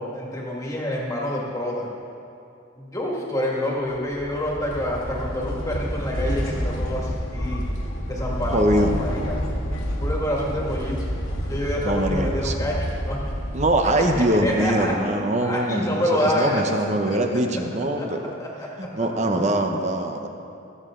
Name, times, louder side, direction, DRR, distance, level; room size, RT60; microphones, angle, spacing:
voice 1, 0.0-1.9 2.8-7.7 8.1-9.4 10.0-11.1 11.4-13.2 14.2-17.6 18.0-19.3, equal, 15° left, -3 dB, 2.0 m, -28 dB
sound 1, 3.9-14.9, equal, 85° left, 1.8 m, -29 dB
voice 2, 8.5-8.9 11.8-12.5 13.5-18.2 18.8-20.3, right 1 dB, 35° right, 5 dB, 0.9 m, -23 dB
23.0 x 7.8 x 3.8 m, 2.5 s
head